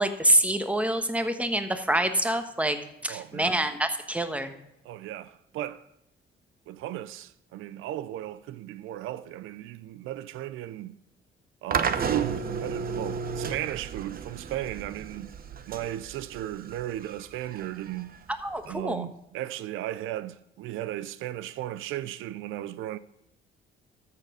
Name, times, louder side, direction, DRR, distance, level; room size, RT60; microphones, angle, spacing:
voice 1, 0.0-4.5 18.4-19.1, right 1 dB, 5° right, 1.2 m, -26 dB
voice 2, 3.1-3.6 4.8-5.9 6.7-11.0 11.6-15.3 15.7-18.1 18.7-23.0, right 13 dB, 90° right, 0.5 m, -35 dB
sound 1, 11.7-18.8, right 6 dB, 50° right, 0.8 m, -33 dB
13.5 x 6.8 x 4.9 m
cardioid pair, 90°, 20 cm